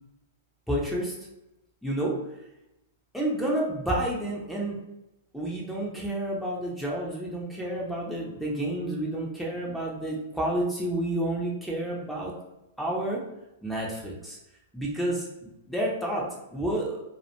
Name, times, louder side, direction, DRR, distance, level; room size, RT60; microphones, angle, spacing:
voice 1, 0.7-1.1 1.8-2.2 3.1-4.8 5.3-12.3 12.8-13.2 13.6-14.4 14.7-17.0, right 1 dB, ahead, -4 dB, 0.5 m, -30 dB
2.3 x 2.1 x 2.7 m, 0.92 s
figure-of-eight pair, 105°, 0 cm